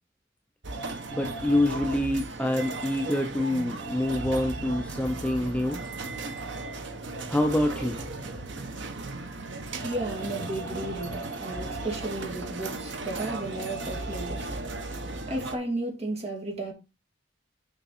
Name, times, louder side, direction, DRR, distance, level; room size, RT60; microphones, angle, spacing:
sound 1, 0.6-15.6, right 2 dB, 70° right, 1.1 m, -36 dB
voice 1, 1.1-5.8 7.3-8.0, left 1 dB, 5° left, 0.6 m, -26 dB
voice 2, 9.8-14.6 15.3-16.7, right 1 dB, 35° right, 2.5 m, -34 dB
6.7 x 5.2 x 4.2 m
head